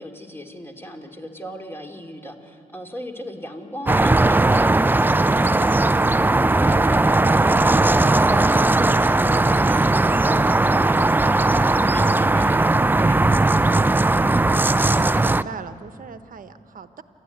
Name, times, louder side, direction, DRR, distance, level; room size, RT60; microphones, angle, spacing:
voice 1, 0.0-5.9 6.1-12.7 13.0-13.2, equal, 15° left, 2 dB, 2.7 m, -38 dB
sound 1, 3.9-15.4, right 2 dB, 10° right, 0.4 m, -18 dB
voice 2, 14.9-17.0, right 5 dB, 65° right, 11 dB, 1.1 m, -38 dB
28.0 x 13.0 x 9.2 m, 2.6 s
cardioid pair, 75°, 16 cm